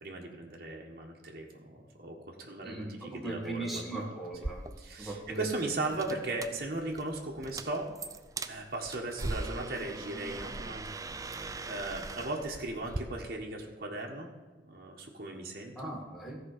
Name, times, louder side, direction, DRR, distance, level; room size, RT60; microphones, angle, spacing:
voice 1, 0.0-4.1 4.8-7.9 8.4-10.8 11.3-14.3 14.6-15.9, right 2 dB, 55° right, -1 dB, 1.6 m, -37 dB
voice 2, 2.6-4.6 5.0-5.5 15.8-16.4, right 2 dB, ahead, -3 dB, 2.0 m, -38 dB
sound 1, 4.3-13.0, right 2 dB, 20° right, 0.4 m, -41 dB
14.5 x 5.0 x 6.7 m, 1.3 s
head